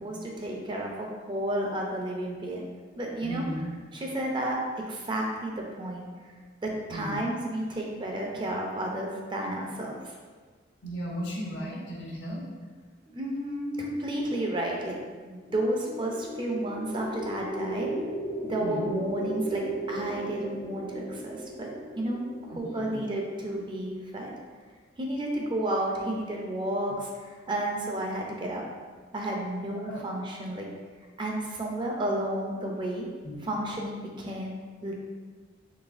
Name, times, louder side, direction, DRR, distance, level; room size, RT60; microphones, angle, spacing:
voice 1, 0.0-2.6 3.0-3.4 3.9-4.6 4.9-6.1 6.6-10.0 13.1-17.9 18.5-22.2 22.5-24.3 25.0-28.6 29.1-30.7 31.2-33.1 33.4-34.9, right 1 dB, 25° right, 0 dB, 0.4 m, -32 dB
voice 2, 3.2-3.7 6.9-7.2 10.8-12.5 18.6-18.9 22.5-23.0 29.8-30.1 33.2-33.5, equal, 80° left, -3 dB, 0.9 m, -36 dB
sound 1, 15.4-23.5, right 1 dB, 35° left, 0.4 m, -36 dB
3.9 x 3.0 x 2.5 m, 1.5 s
head